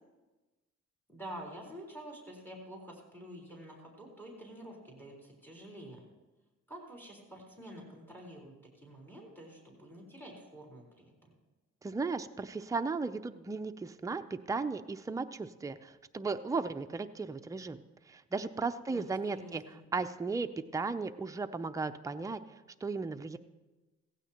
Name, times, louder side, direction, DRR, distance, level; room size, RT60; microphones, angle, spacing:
voice 1, 1.1-6.0 6.7-11.3 18.9-19.8, right 1 dB, 5° left, -2 dB, 4.2 m, -48 dB
voice 2, 11.8-17.8 18.1-19.6 19.9-22.4 22.8-23.4, right 4 dB, 10° right, 8 dB, 0.5 m, -35 dB
16.5 x 15.5 x 3.0 m, 1.2 s
cardioid pair, 90°, 30 cm